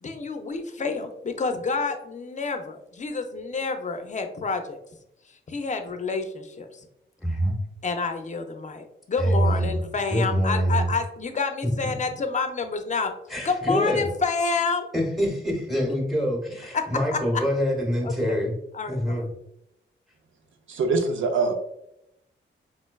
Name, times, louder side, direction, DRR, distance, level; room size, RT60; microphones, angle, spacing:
voice 1, 0.0-4.8 5.5-6.7 7.8-13.1 13.4-14.9 17.1-17.2 18.0-18.4 18.7-19.2, left 4 dB, 35° left, 6 dB, 0.4 m, -28 dB
voice 2, 7.2-7.5 9.2-9.8 10.1-10.9 11.6-12.0 13.3-14.1 14.9-18.5 18.9-19.3, equal, ahead, -1 dB, 0.9 m, -25 dB
voice 3, 20.7-21.5, right 4 dB, 70° right, 5 dB, 0.5 m, -23 dB
4.4 x 2.1 x 2.2 m, 0.80 s
wide cardioid pair, 100°, 20 cm